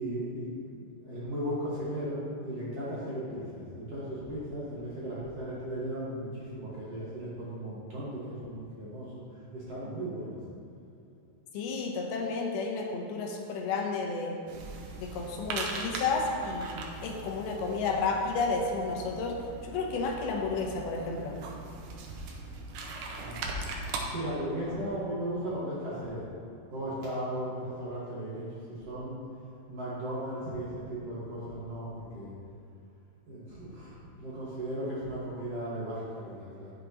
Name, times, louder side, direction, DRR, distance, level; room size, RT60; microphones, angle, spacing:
voice 1, 0.0-9.1 9.5-10.4 23.0-23.7 24.1-26.3 26.7-29.2 29.7-32.3 33.3-36.7, right 1 dB, 50° right, -9 dB, 2.2 m, -36 dB
voice 2, 11.5-14.4 15.0-19.4 19.6-21.3, left 4 dB, 80° left, 1 dB, 2.7 m, -31 dB
sound 1, 14.5-24.0, right 3 dB, 85° right, 1.7 m, -40 dB
9.9 x 8.2 x 3.0 m, 2.7 s
omnidirectional pair, 4.5 m